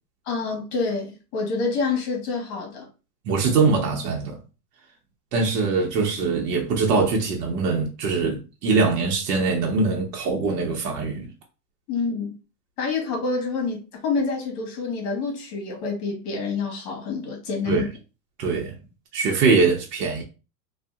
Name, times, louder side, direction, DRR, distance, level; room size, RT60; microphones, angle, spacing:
voice 1, 0.2-2.9 11.9-12.4 12.8-17.8, left 4 dB, 45° left, 1.2 m, -27 dB
voice 2, 3.2-4.4 5.3-11.3 17.6-17.8 18.4-18.8 19.1-20.2, right 4 dB, 75° right, 1.0 m, -22 dB
2.7 x 2.4 x 2.4 m
hypercardioid pair, 125°, 48 cm